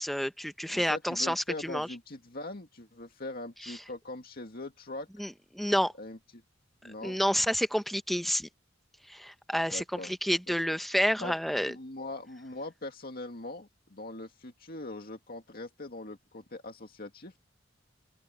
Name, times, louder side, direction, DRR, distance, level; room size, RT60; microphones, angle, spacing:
voice 1, 0.0-1.9 3.6-3.8 5.2-5.9 7.0-8.5 9.1-11.7, equal, ahead, 0.9 m, -29 dB
voice 2, 0.7-5.1 6.0-6.4 6.8-7.2 9.5-10.1 10.5-10.8 11.2-17.4, left 2 dB, 50° left, 2.1 m, -42 dB
open air
head